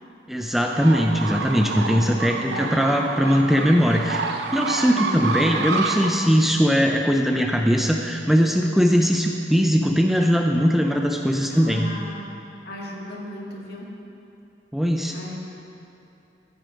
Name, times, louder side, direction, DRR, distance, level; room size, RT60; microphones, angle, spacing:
voice 1, 0.3-4.2 4.5-11.9 14.7-15.1, equal, ahead, 2 dB, 0.5 m, -20 dB
sound 1, 0.7-6.1, right 4 dB, 65° right, 0.8 m, -28 dB
voice 2, 1.6-2.9 4.9-5.5 11.5-12.4 12.7-13.9 15.1-15.4, left 1 dB, 60° left, -3 dB, 2.2 m, -37 dB
14.0 x 9.3 x 5.2 m, 2.8 s
head